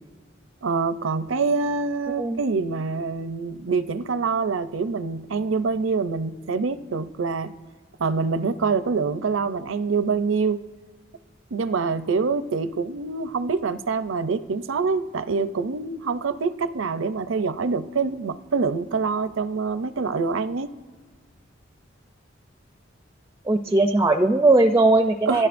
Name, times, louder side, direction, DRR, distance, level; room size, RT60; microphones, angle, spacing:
voice 1, 0.6-7.6 8.0-10.6 11.5-20.7 25.3-25.5, right 4 dB, 80° right, 13 dB, 0.5 m, -25 dB
voice 2, 23.5-25.5, right 2 dB, 15° right, 7 dB, 0.4 m, -19 dB
26.0 x 12.5 x 2.6 m, 1.5 s
head